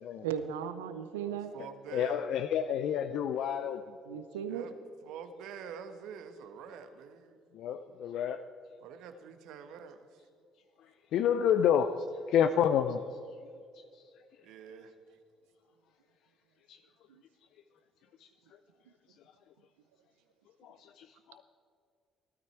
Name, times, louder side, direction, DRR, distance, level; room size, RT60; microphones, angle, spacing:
voice 1, 0.2-1.6 4.1-4.7 17.1-17.2, right 8 dB, 85° right, 10 dB, 0.7 m, -36 dB
voice 2, 1.2-2.3 4.5-4.7 5.0-7.4 8.8-10.2 14.4-14.9, right 7 dB, 70° right, 8 dB, 1.2 m, -46 dB
voice 3, 1.9-3.8 4.1-4.2 7.5-8.4 11.1-11.9 12.3-13.0 16.7-16.8 20.6-21.4, left 9 dB, 65° left, 10 dB, 0.5 m, -29 dB
17.0 x 12.5 x 4.5 m, 2.3 s
hypercardioid pair, 55°, 0 cm